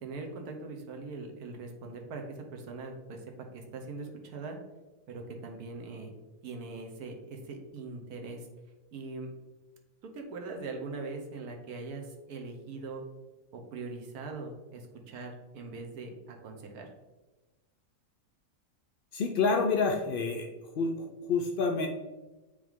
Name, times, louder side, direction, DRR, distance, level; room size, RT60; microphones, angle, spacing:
voice 1, 0.0-3.2 3.5-4.6 5.1-6.1 6.4-8.5 8.9-9.3 10.1-13.0 13.5-16.9, right 3 dB, 85° right, 2 dB, 1.4 m, -41 dB
voice 2, 19.1-20.5 20.8-21.9, left 4 dB, 80° left, 3 dB, 0.5 m, -28 dB
8.7 x 3.3 x 3.6 m, 1.1 s
omnidirectional pair, 1.6 m